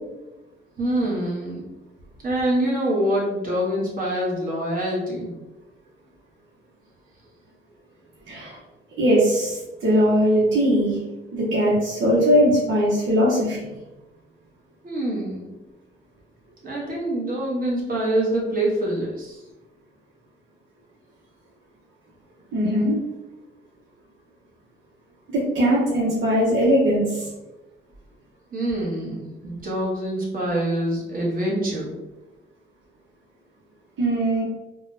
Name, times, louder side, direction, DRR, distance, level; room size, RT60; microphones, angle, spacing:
voice 1, 0.8-1.6 2.2-5.3 14.8-15.5 16.6-19.4 28.5-31.9, right 1 dB, 40° right, -4 dB, 1.1 m, -25 dB
voice 2, 9.0-11.0 11.3-13.6 22.5-23.0 25.3-27.3 34.0-34.4, equal, 70° right, -7 dB, 0.9 m, -20 dB
3.7 x 2.2 x 2.7 m, 1.0 s
cardioid pair, 135°, 21 cm